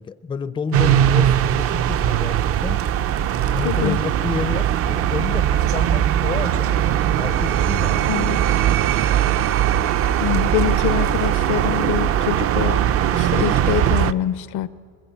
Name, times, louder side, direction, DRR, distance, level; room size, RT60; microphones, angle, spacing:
voice 1, 0.0-2.8 3.5-8.1, left 5 dB, 15° left, 13 dB, 0.5 m, -30 dB
sound 1, 0.7-14.1, right 10 dB, 40° right, 0.5 m, -20 dB
voice 2, 3.6-4.0 8.1-8.6 10.2-12.8 13.1-14.7, left 13 dB, 55° left, 17 dB, 0.6 m, -25 dB
sound 2, 6.7-14.0, right 9 dB, 65° right, 1.0 m, -33 dB
24.5 x 21.5 x 8.0 m, 2.3 s
cardioid pair, 140°, 36 cm